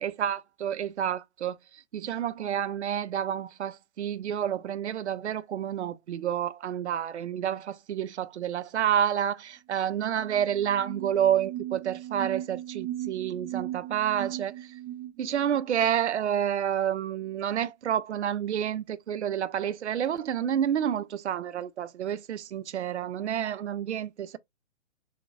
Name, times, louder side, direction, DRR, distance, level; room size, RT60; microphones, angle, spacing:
voice 1, 0.0-1.6 1.9-14.5 15.2-24.4, right 9 dB, 65° right, 0.6 m, -29 dB
sound 1, 10.0-15.8, right 13 dB, 15° right, 0.6 m, -38 dB
6.3 x 3.0 x 2.4 m
figure-of-eight pair, 125°, 37 cm